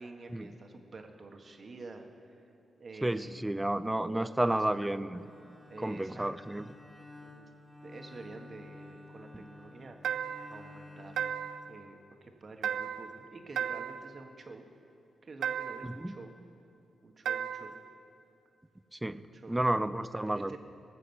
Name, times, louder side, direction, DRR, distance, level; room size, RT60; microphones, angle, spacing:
voice 1, 0.0-2.4 2.8-3.6 4.0-5.1 5.7-6.6 7.2-7.5 7.8-11.3 11.7-14.6 15.2-16.4 17.0-17.8 19.2-19.6 20.3-20.6, right 3 dB, 50° right, 4 dB, 1.6 m, -48 dB
voice 2, 3.0-5.2 5.8-6.6 16.0-16.2 18.9-20.6, right 1 dB, 15° right, 14 dB, 0.5 m, -31 dB
Bowed string instrument, 5.1-12.3, left 2 dB, 5° left, 2.8 m, -52 dB
sound 1, 10.0-10.6 11.2-11.7 12.6-13.2 13.6-14.1 15.4-16.0 17.3-17.8, right 8 dB, 80° right, 0.4 m, -34 dB
19.0 x 6.4 x 7.9 m, 2.7 s
supercardioid pair, 50°, 0 cm